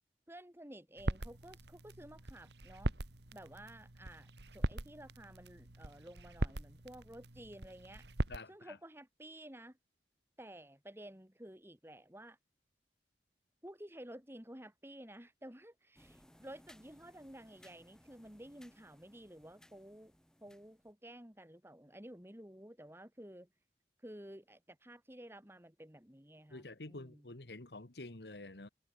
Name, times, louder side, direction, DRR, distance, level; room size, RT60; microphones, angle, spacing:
voice 1, 0.3-2.9 3.3-8.1 8.5-9.8 10.4-12.4 13.6-20.1 20.4-23.5 24.0-27.2, right 1 dB, 15° right, 2.9 m, -53 dB
sound 1, 1.0-8.4, right 1 dB, 75° right, 2.2 m, -41 dB
voice 2, 8.3-8.8 26.5-28.7, left 2 dB, 70° left, 1.7 m, -48 dB
sound 2, 15.9-20.9, equal, 5° left, 6.6 m, -64 dB
head